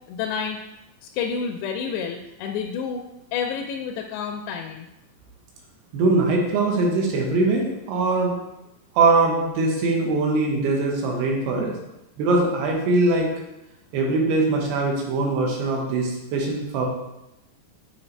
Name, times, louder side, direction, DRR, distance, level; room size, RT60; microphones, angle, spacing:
voice 1, 0.1-0.6 1.1-3.0 3.3-4.9, left 6 dB, 90° left, 3 dB, 2.7 m, -29 dB
voice 2, 5.9-8.3 8.9-11.7 12.2-13.3 13.9-16.9, right 3 dB, 75° right, 0 dB, 3.0 m, -22 dB
8.5 x 4.7 x 3.2 m, 0.92 s
omnidirectional pair, 4.8 m